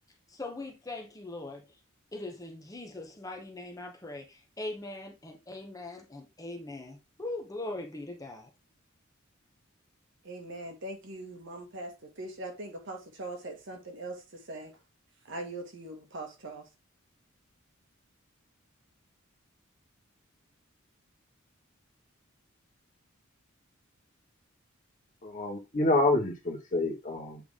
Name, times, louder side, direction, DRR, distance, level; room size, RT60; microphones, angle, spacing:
voice 1, 0.3-1.7 2.1-8.5, left 2 dB, 15° left, 0.9 m, -41 dB
voice 2, 10.2-14.7 15.2-16.7, right 2 dB, 65° right, 1.6 m, -41 dB
voice 3, 25.2-27.4, left 2 dB, 40° left, 1.8 m, -27 dB
8.2 x 3.4 x 3.7 m
head